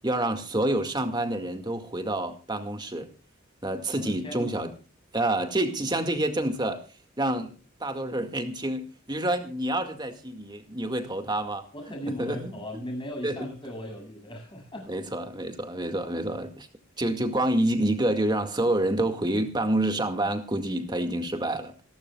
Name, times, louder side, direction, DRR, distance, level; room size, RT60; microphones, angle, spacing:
voice 1, 0.0-3.1 3.6-4.7 5.1-6.8 7.2-11.7 12.1-12.5 13.2-13.5 14.9-16.7 17.0-21.7, right 1 dB, 20° right, 2.0 m, -28 dB
voice 2, 4.0-4.6 11.7-14.9, equal, 25° left, 7.7 m, -38 dB
27.5 x 12.0 x 2.4 m
head